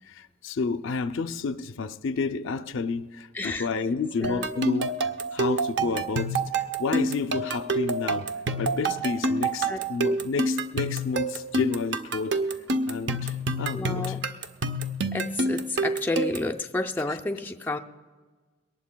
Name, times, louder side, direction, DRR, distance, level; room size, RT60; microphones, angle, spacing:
voice 1, 0.1-4.9 5.3-8.3 8.6-12.4 12.9-14.2, left 4 dB, 70° left, 0.4 m, -30 dB
voice 2, 3.3-3.7 4.2-4.9 9.7-10.2 13.7-14.3 15.1-17.8, left 2 dB, 10° left, 0.4 m, -31 dB
sound 1, 4.2-16.5, right 2 dB, 55° right, 0.6 m, -28 dB
22.5 x 18.5 x 2.2 m
head